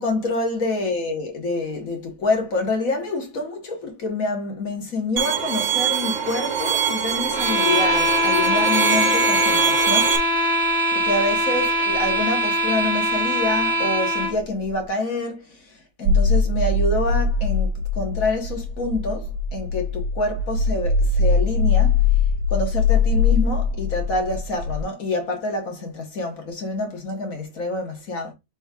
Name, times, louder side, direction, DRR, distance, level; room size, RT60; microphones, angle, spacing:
voice 1, 0.0-10.2 10.9-15.7 16.0-22.0 22.5-28.3, left 2 dB, 60° left, 1.7 m, -27 dB
Bowed string instrument, 5.2-10.2, right 8 dB, 50° right, 1.1 m, -23 dB
sound 1, 7.3-14.4, right 1 dB, 20° left, 0.8 m, -21 dB
sound 2, 16.1-24.8, left 4 dB, 90° right, 1.2 m, -21 dB
6.1 x 3.6 x 2.4 m
omnidirectional pair, 1.6 m